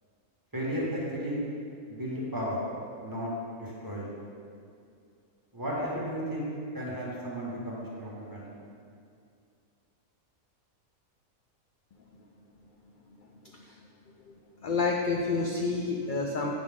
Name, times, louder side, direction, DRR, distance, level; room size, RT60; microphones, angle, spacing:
voice 1, 0.5-1.4 1.9-2.6 3.0-4.1 5.5-8.4, equal, 15° right, -6 dB, 1.5 m, -34 dB
voice 2, 14.6-16.5, left 3 dB, 60° left, 0 dB, 0.5 m, -29 dB
8.3 x 5.6 x 3.6 m, 2.4 s
omnidirectional pair, 1.5 m